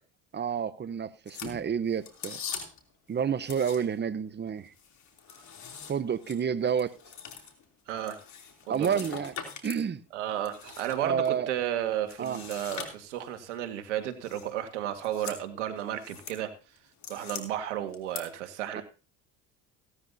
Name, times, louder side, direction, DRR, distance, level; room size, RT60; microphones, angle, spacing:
voice 1, 0.3-2.4 3.1-4.7 5.9-6.9 8.7-9.3 9.6-10.0 11.0-11.5 12.2-12.4 18.7-18.8, right 7 dB, 30° right, 0.9 m, -29 dB
sound 1, 1.3-2.9 3.4-4.1 4.5-9.8 10.2-11.3 12.1-13.4 14.2-14.5 14.9-15.4 15.8-16.4 16.8-17.4 17.9-18.2, left 7 dB, 55° left, 3.2 m, -43 dB
voice 2, 7.9-8.2 8.7-9.0 10.1-16.5 17.1-18.8, right 11 dB, 90° right, 1.8 m, -33 dB
16.5 x 12.5 x 2.8 m
supercardioid pair, 75°, 35 cm